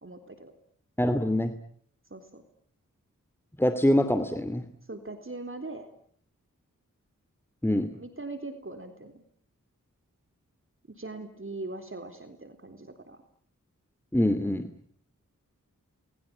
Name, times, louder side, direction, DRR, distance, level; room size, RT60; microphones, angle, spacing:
voice 1, 0.0-0.5 2.1-2.4 4.9-5.9 8.0-9.2 11.0-13.2, right 2 dB, 40° right, 7 dB, 3.7 m, -40 dB
voice 2, 1.0-1.5 3.6-4.7 7.6-7.9 14.1-14.7, left 1 dB, 5° left, 10 dB, 2.6 m, -24 dB
28.5 x 21.0 x 8.7 m, 0.62 s
wide cardioid pair, 55°, 32 cm